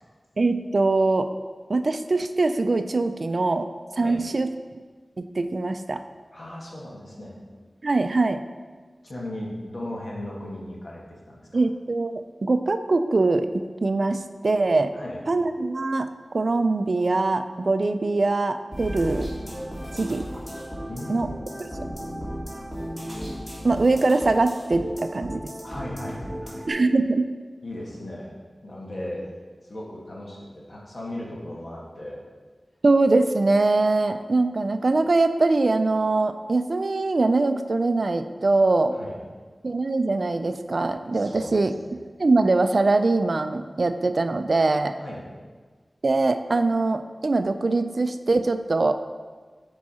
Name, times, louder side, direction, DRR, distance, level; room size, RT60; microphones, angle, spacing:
voice 1, 0.4-1.3 1.7-3.7 3.9-4.5 5.2-6.0 7.8-8.4 11.5-14.9 15.3-19.3 19.9-20.3 21.1-21.3 21.6-21.7 23.6-25.5 26.7-27.3 32.8-39.0 39.6-41.7 42.2-45.0 46.0-48.9, right 3 dB, 60° right, 9 dB, 0.3 m, -22 dB
voice 2, 6.3-7.6 9.0-11.6 14.9-15.2 20.9-21.6 25.6-26.7 27.6-28.3 28.6-29.2 29.6-32.2 39.0-39.2 41.1-42.0 45.0-45.2, left 1 dB, 60° left, -4 dB, 1.6 m, -37 dB
sound 1, 18.7-26.7, equal, 15° left, 2.2 m, -35 dB
7.5 x 4.6 x 4.2 m, 1.4 s
wide cardioid pair, 80°, 0 cm